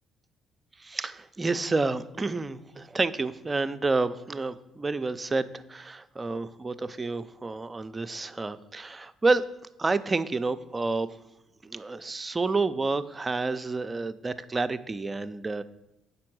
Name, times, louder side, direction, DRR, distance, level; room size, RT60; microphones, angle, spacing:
voice 1, 0.8-9.4 9.8-11.1 11.6-15.6, right 3 dB, 25° right, 11 dB, 0.5 m, -29 dB
7.5 x 5.4 x 6.0 m, 0.92 s
supercardioid pair, 70°, 0 cm